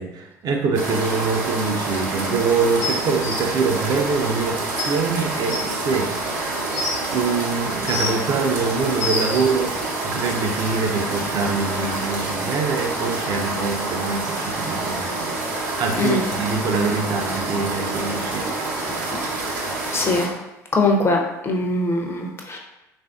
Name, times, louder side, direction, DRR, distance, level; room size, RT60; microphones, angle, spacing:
voice 1, 0.0-6.1 7.1-19.0, right 4 dB, 45° right, 3 dB, 0.5 m, -24 dB
sound 1, 0.7-20.3, right 2 dB, 75° right, 0.7 m, -27 dB
sound 2, 2.8-3.3 4.4-4.5 4.8-4.9 5.5-5.6 6.4-7.0 7.6-8.3 8.7-9.4 10.4-10.5, left 3 dB, 75° left, 0.8 m, -27 dB
voice 2, 19.9-20.3 20.7-21.2 21.4-22.6, left 2 dB, 25° left, 1 dB, 0.6 m, -21 dB
3.3 x 2.5 x 2.3 m, 0.94 s
hypercardioid pair, 60°, 9 cm